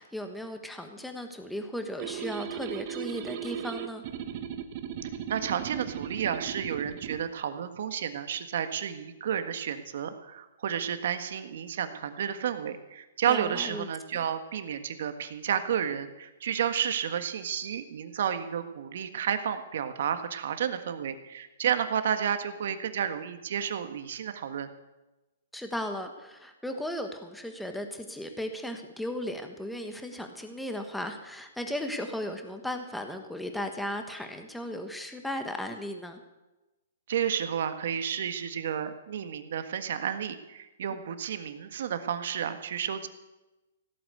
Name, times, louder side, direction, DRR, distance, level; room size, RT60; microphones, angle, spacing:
voice 1, 0.0-4.0 13.3-13.9 14.1-14.2 25.5-36.2, left 1 dB, ahead, 5 dB, 1.3 m, -36 dB
sound 1, 2.0-7.2, right 9 dB, 45° right, 1.2 m, -37 dB
voice 2, 5.0-24.7 37.1-43.1, right 8 dB, 65° right, 9 dB, 1.6 m, -31 dB
16.0 x 8.5 x 8.2 m, 1.0 s
hypercardioid pair, 145°, 0 cm